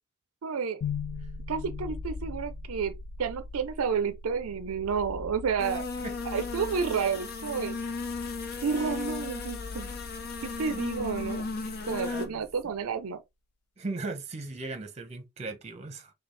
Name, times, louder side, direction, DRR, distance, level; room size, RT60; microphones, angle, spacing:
voice 1, 0.4-0.8 1.5-2.9 3.2-5.8 6.3-7.8 8.6-10.0 10.6-11.5 11.9-13.2, right 6 dB, 80° right, 0.5 m, -30 dB
sound 1, 0.8-12.9, left 4 dB, 80° left, 0.4 m, -41 dB
sound 2, 5.6-12.3, left 4 dB, 45° left, 0.8 m, -36 dB
voice 2, 11.9-12.5 13.8-16.1, right 3 dB, 30° right, 0.8 m, -38 dB
5.2 x 2.4 x 3.2 m
head